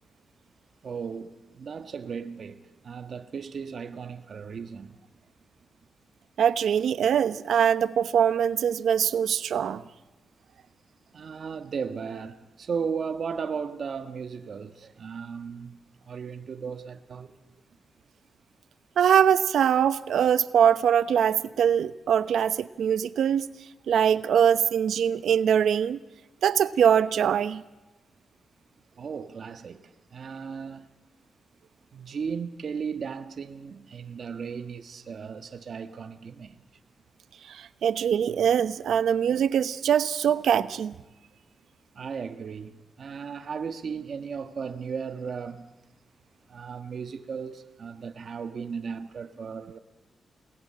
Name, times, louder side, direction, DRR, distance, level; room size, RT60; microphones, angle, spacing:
voice 1, 0.8-5.0 11.1-15.8 16.0-17.3 28.9-30.9 31.9-36.6 41.9-45.7 46.5-49.8, right 6 dB, 60° right, 1.4 m, -36 dB
voice 2, 6.4-9.8 19.0-23.5 23.9-26.0 26.4-27.6 37.5-40.9, right 8 dB, 85° right, 0.9 m, -23 dB
28.0 x 19.5 x 8.8 m
cardioid pair, 95°, 0 cm